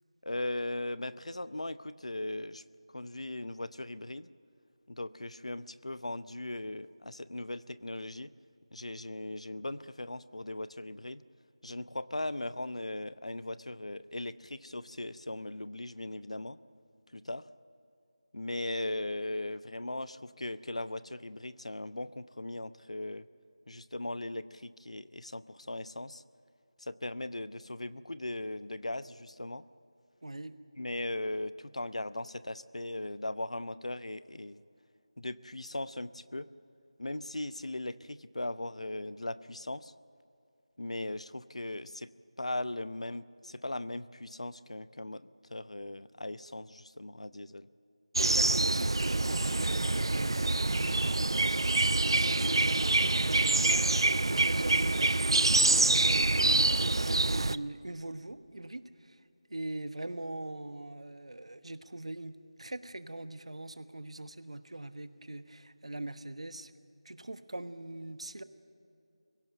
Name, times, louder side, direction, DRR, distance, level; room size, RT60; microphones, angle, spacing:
voice 1, 0.2-2.6 2.9-4.3 4.9-8.3 8.7-11.2 11.6-16.6 17.1-17.4 18.3-23.3 23.7-26.2 26.8-29.6 30.8-34.6 35.2-36.5 37.0-39.9 40.8-42.1 42.4-47.7, left 1 dB, 90° left, 15 dB, 0.8 m, -38 dB
voice 2, 30.2-30.6 48.2-50.9 51.7-59.2 59.5-66.7 67.0-68.4, right 2 dB, 70° right, 11 dB, 1.2 m, -41 dB
sound 1, 48.2-57.6, right 2 dB, 50° right, 0.4 m, -26 dB
23.5 x 16.5 x 8.9 m, 2.7 s
figure-of-eight pair, 175°, 3 cm